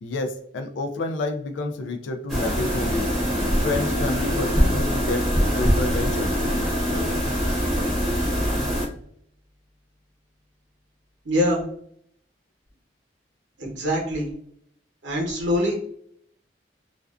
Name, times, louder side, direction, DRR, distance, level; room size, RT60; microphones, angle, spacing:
voice 1, 0.0-3.1 3.6-5.2 5.6-6.3, left 2 dB, 85° left, 5 dB, 0.3 m, -29 dB
sound 1, 2.3-8.9, equal, ahead, 0.7 m, -23 dB
voice 2, 11.2-11.6 13.6-14.3 15.0-15.7, equal, 75° right, -1 dB, 0.8 m, -23 dB
2.4 x 2.2 x 2.3 m, 0.65 s
head